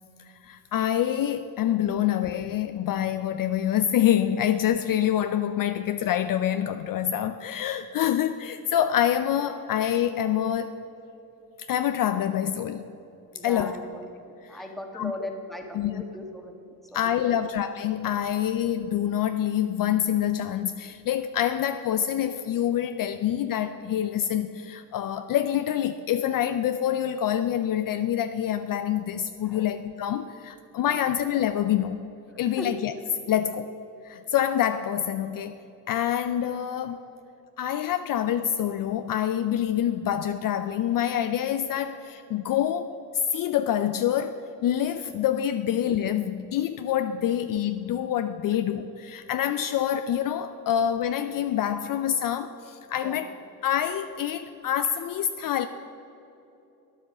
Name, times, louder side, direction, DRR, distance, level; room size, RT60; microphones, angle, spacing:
voice 1, 0.4-10.7 11.6-12.8 13.4-13.7 14.5-14.7 14.9-15.1 15.7-16.0 16.9-32.0 32.4-32.9 33.3-33.7 34.0-35.6 35.9-37.0 37.6-53.3 53.6-55.7, left 10 dB, 55° left, 10 dB, 0.5 m, -26 dB
voice 2, 13.3-14.1 14.5-16.5 16.9-17.4 29.5-29.7 30.8-31.0 32.6-32.7 36.9-37.2 53.0-53.2, left 1 dB, ahead, 2 dB, 1.4 m, -38 dB
9.6 x 8.2 x 6.2 m, 2.9 s
supercardioid pair, 75°, 41 cm